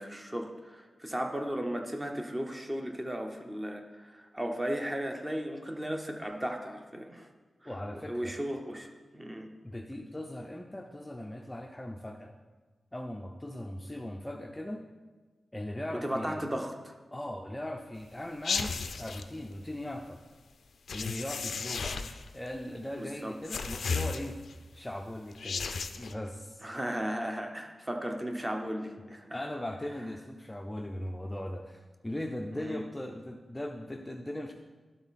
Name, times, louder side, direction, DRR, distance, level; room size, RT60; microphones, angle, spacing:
voice 1, 0.0-7.3 7.6-9.5 16.0-16.9 23.0-23.3 26.6-29.4 32.5-32.8, equal, 15° right, 3 dB, 0.8 m, -36 dB
voice 2, 7.6-8.3 9.6-12.3 12.9-14.8 15.5-16.4 17.1-20.2 20.9-22.0 22.3-24.4 24.7-25.7 26.0-26.7 29.3-34.5, left 1 dB, 15° left, 3 dB, 0.4 m, -39 dB
sound 1, 18.4-19.2 20.9-22.3 23.4-24.5 25.3-26.1, left 5 dB, 85° left, 0.4 m, -34 dB
11.5 x 4.0 x 4.1 m, 1.3 s
wide cardioid pair, 100°, 0 cm